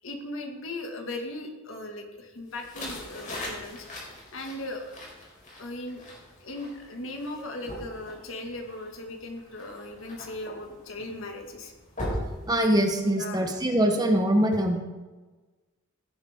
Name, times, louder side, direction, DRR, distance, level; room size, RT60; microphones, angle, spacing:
voice 1, 0.0-3.9 4.3-5.0 5.6-6.0 6.4-11.7 13.1-13.5, left 2 dB, 75° left, 2 dB, 2.1 m, -38 dB
sound 1, 2.5-13.2, left 1 dB, 40° left, 4.6 m, -40 dB
voice 2, 12.5-14.8, right 1 dB, 20° right, 3 dB, 1.3 m, -23 dB
16.0 x 10.5 x 3.7 m, 1.2 s
head